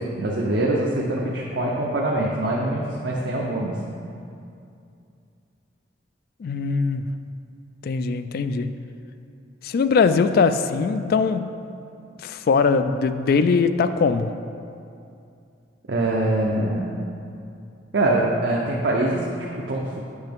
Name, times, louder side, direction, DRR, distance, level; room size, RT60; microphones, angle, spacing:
voice 1, 0.0-3.8 15.9-17.0 17.9-20.1, right 1 dB, 70° right, -3 dB, 0.7 m, -24 dB
voice 2, 6.4-7.1 7.8-8.7 9.6-11.6 12.2-14.3, left 5 dB, 55° left, 11 dB, 0.3 m, -21 dB
8.0 x 5.9 x 3.5 m, 2.5 s
head